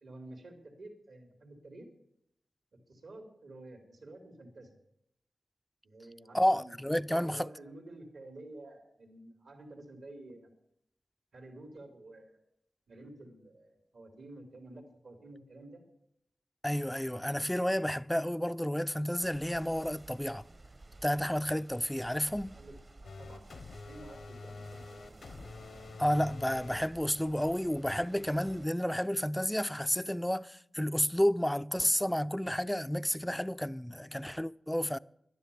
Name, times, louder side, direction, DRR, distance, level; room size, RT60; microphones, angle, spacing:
voice 1, 0.0-1.9 2.7-4.8 5.8-6.8 7.1-10.5 11.3-12.4 12.9-15.8 22.2-23.5 23.9-25.2, right 2 dB, 75° right, 2.8 m, -51 dB
voice 2, 6.3-7.5 16.6-20.4 21.0-22.6 26.0-35.0, equal, 5° left, 0.4 m, -31 dB
sound 1, 19.2-28.7, right 2 dB, 45° right, 1.2 m, -54 dB
sound 2, 23.0-26.8, left 3 dB, 75° left, 1.0 m, -46 dB
11.5 x 10.5 x 6.9 m
cardioid pair, 50°, 0 cm